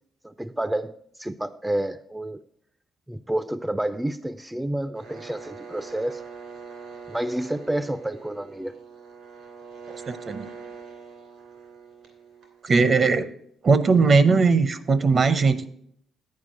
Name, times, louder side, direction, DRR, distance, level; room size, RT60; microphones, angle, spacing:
voice 1, 0.2-2.4 3.1-6.2 7.1-8.7, right 1 dB, 10° right, 12 dB, 0.4 m, -29 dB
sound 1, 5.0-12.7, right 5 dB, 80° right, 2.6 m, -43 dB
voice 2, 10.1-10.5 12.6-13.3 13.6-15.7, right 4 dB, 45° right, 14 dB, 0.7 m, -19 dB
9.6 x 4.7 x 7.4 m, 0.67 s
cardioid pair, 90°, 0 cm